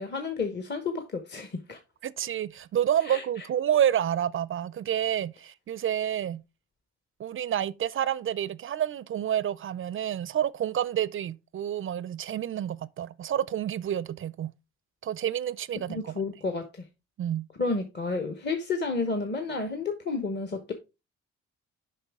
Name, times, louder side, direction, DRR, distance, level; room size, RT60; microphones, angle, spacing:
voice 1, 0.0-1.8 3.0-3.2 15.9-16.6 17.6-20.7, left 4 dB, 35° left, 1.0 m, -31 dB
voice 2, 2.0-6.4 7.2-14.5 15.0-16.1 17.2-17.5, right 10 dB, 45° right, 0.4 m, -29 dB
6.6 x 5.3 x 3.5 m
cardioid pair, 90°, 30 cm